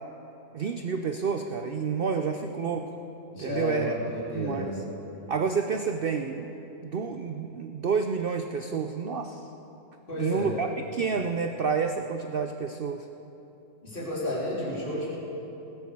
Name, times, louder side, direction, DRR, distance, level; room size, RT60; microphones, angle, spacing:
voice 1, 0.5-2.9 3.4-3.9 4.3-4.8 5.3-6.6 6.8-9.5 10.2-13.1, right 5 dB, 90° right, 6 dB, 0.5 m, -29 dB
voice 2, 3.3-4.8 10.1-10.5 13.8-15.1, left 1 dB, 30° left, -7 dB, 3.5 m, -32 dB
20.0 x 7.2 x 6.8 m, 3.0 s
omnidirectional pair, 1.7 m